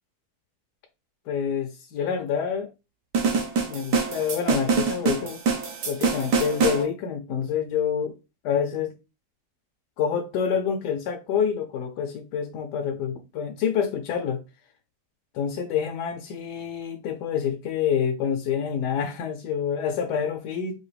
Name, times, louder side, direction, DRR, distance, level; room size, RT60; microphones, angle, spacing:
voice 1, 1.3-2.7 3.7-5.4 5.9-8.2 8.4-8.9 10.0-14.4 15.3-20.7, left 7 dB, 90° left, 1.2 m, -27 dB
sound 1, 3.1-6.8, right 5 dB, 75° right, 1.4 m, -25 dB
4.8 x 2.6 x 3.2 m
omnidirectional pair, 1.7 m